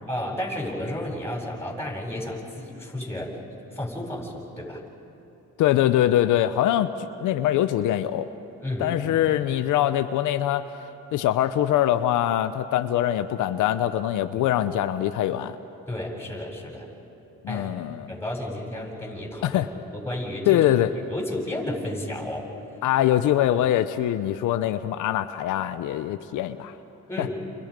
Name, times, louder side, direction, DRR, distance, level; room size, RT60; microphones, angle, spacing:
voice 1, 0.1-3.4 3.7-4.8 8.6-9.2 14.3-14.4 15.9-16.9 17.5-17.7 18.1-19.6 19.9-20.7 21.1-22.5 27.1-27.4, left 1 dB, 10° left, -2 dB, 8.0 m, -32 dB
voice 2, 5.6-6.9 7.2-8.3 8.8-10.7 11.1-15.6 17.4-18.1 19.4-19.7 20.5-20.9 22.8-26.7 27.2-27.3, left 12 dB, 85° left, 10 dB, 0.8 m, -23 dB
30.0 x 29.0 x 5.3 m, 3.0 s
cardioid pair, 90°, 30 cm